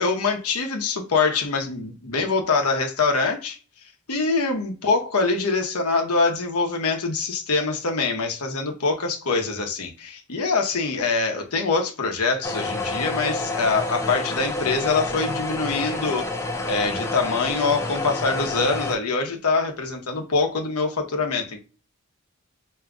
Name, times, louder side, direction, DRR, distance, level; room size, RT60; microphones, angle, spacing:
voice 1, 0.0-3.6 4.1-16.3 16.7-21.7, left 4 dB, 85° left, 1.0 m, -24 dB
sound 1, 12.4-18.9, left 2 dB, 15° left, 0.6 m, -29 dB
5.1 x 2.8 x 2.3 m
head